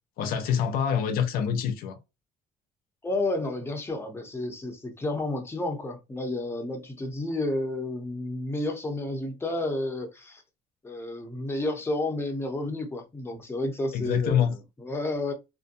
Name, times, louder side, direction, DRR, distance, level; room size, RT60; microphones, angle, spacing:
voice 1, 0.2-2.0 13.9-14.5, left 8 dB, 80° left, 0.5 m, -26 dB
voice 2, 3.0-10.4 10.8-15.3, left 2 dB, 15° left, 0.7 m, -31 dB
2.7 x 2.1 x 2.5 m
cardioid pair, 125°, 15 cm